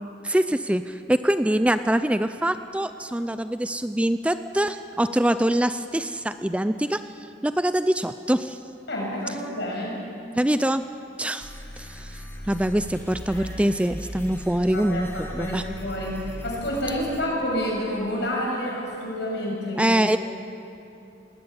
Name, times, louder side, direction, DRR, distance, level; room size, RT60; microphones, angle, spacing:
voice 1, 0.2-7.0 7.4-8.6 10.4-10.8 11.2-11.5 11.8-15.6 19.8-20.2, right 1 dB, 5° right, 11 dB, 0.4 m, -24 dB
voice 2, 8.9-10.0 13.3-13.5 14.7-19.9, equal, 65° left, -2 dB, 7.0 m, -29 dB
sound 1, 11.4-17.2, equal, 15° left, 3.0 m, -38 dB
20.0 x 16.5 x 9.6 m, 2.7 s
head